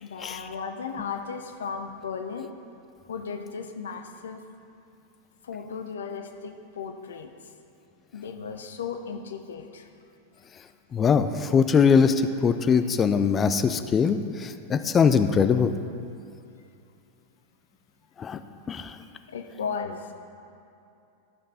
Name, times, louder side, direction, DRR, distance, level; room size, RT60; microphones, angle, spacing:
voice 1, 0.0-2.5 3.1-4.4 5.4-7.3 8.1-9.9 19.3-20.1, left 6 dB, 65° left, 6 dB, 0.6 m, -35 dB
voice 2, 10.9-15.7 18.2-18.4 18.7-18.9, left 6 dB, 20° left, 9 dB, 0.4 m, -22 dB
12.5 x 5.3 x 4.2 m, 2.6 s
figure-of-eight pair, 90°, 0 cm